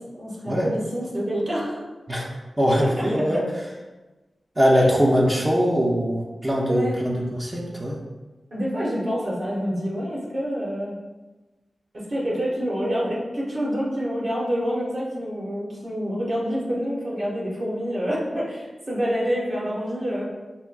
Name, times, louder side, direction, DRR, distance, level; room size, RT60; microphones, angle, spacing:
voice 1, 0.2-1.8 3.0-3.4 4.7-4.9 6.7-7.0 8.5-11.0 11.9-20.2, equal, 55° right, -6 dB, 1.2 m, -27 dB
voice 2, 2.6-3.4 4.6-8.0, equal, 20° right, -2 dB, 0.5 m, -21 dB
5.6 x 2.6 x 2.3 m, 1.2 s
wide cardioid pair, 110°, 0 cm